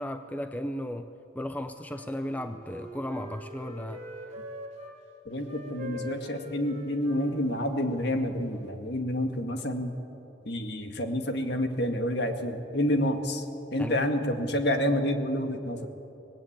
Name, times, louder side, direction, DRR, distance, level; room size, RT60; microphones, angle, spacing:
voice 1, 0.0-4.1 13.8-14.1, left 1 dB, 10° left, 8 dB, 0.6 m, -35 dB
Wind instrument woodwind instrument, 1.8-5.0 5.4-8.8, equal, 35° right, 3.6 m, -43 dB
voice 2, 5.3-9.9 10.4-13.4 13.7-15.8, equal, 55° left, 5 dB, 2.0 m, -28 dB
25.0 x 19.0 x 8.9 m, 2.9 s
head